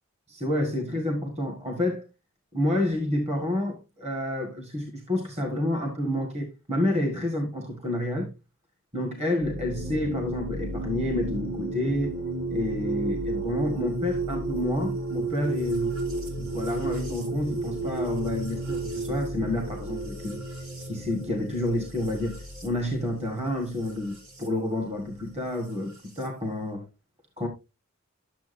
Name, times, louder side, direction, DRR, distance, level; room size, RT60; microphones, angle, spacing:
voice 1, 0.3-2.0 2.5-8.3 8.9-12.1 12.5-15.9 16.4-20.4 20.8-26.8 27.4-27.5, left 1 dB, 30° right, 1.7 m, -29 dB
sound 1, 9.4-24.5 25.6-26.3, right 2 dB, 75° right, 3.5 m, -33 dB
12.0 x 7.2 x 2.6 m
head